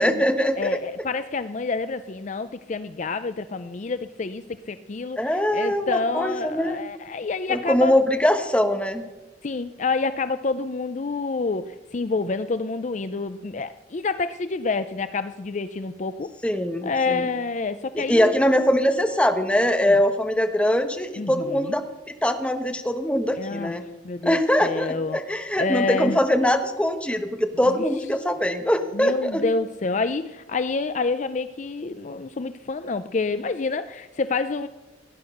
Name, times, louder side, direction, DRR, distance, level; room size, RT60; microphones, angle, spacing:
voice 1, 0.0-0.8 5.2-6.8 7.5-9.0 16.4-17.3 17.9-21.8 22.2-23.8 24.2-29.4, equal, 5° left, 6 dB, 1.1 m, -22 dB
voice 2, 0.6-8.0 9.4-16.3 16.8-18.4 19.8-20.0 21.2-21.8 23.4-23.7 24.0-25.2 25.6-26.2 27.7-27.8 28.9-34.7, left 4 dB, 40° left, 12 dB, 0.4 m, -28 dB
16.5 x 10.5 x 6.5 m, 1.1 s
head